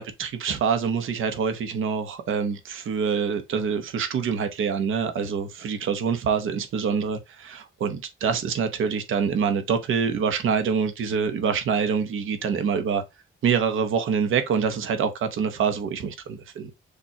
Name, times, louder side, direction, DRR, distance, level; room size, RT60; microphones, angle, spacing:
voice 1, 0.0-13.0 13.4-16.7, right 6 dB, 80° right, 0.9 m, -25 dB
6.6 x 2.4 x 2.8 m
wide cardioid pair, 145°, 20 cm